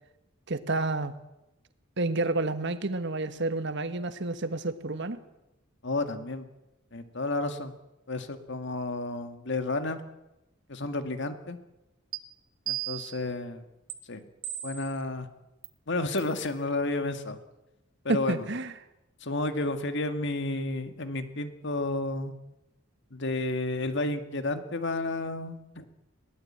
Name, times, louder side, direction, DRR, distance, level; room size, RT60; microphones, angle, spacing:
voice 1, 0.5-1.1 2.0-5.2 18.1-18.7, right 2 dB, 55° right, 11 dB, 1.5 m, -29 dB
voice 2, 5.8-6.5 6.9-7.7 8.1-10.0 10.7-11.6 12.7-13.6 14.1-14.2 14.6-15.3 15.9-17.4 18.0-18.5 19.2-22.3 23.1-25.8, left 2 dB, 60° left, 9 dB, 1.9 m, -31 dB
sound 1, 12.1-12.2 12.7-13.3 13.9-14.0 14.4-15.0 15.6-15.7 16.2-16.4, right 13 dB, 80° right, 2.1 m, -35 dB
22.0 x 18.0 x 8.7 m, 0.96 s
head